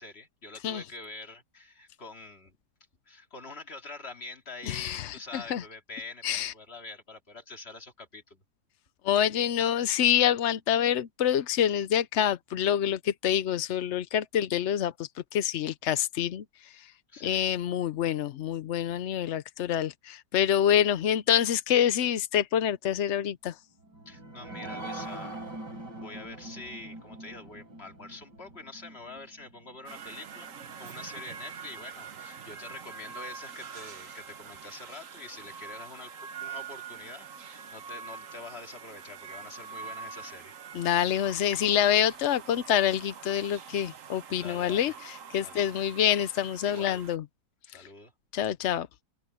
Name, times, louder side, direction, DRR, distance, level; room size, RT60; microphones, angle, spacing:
voice 1, 0.0-2.6 3.1-8.4 17.1-17.5 24.1-25.4 25.9-36.1 36.4-40.6 44.4-45.0 45.4-45.6 46.6-47.0 47.7-48.1, left 3 dB, 35° left, 2.7 m, -45 dB
voice 2, 4.7-5.6 6.2-6.5 9.0-16.9 17.2-23.5 40.7-47.2 48.3-48.9, left 10 dB, 60° left, 0.7 m, -27 dB
sound 1, 23.8-30.9 31.3-31.4 31.8-31.9, right 2 dB, 85° right, 5.9 m, -43 dB
sound 2, 29.9-47.2, right 7 dB, 55° right, 1.3 m, -45 dB
open air
omnidirectional pair, 1.8 m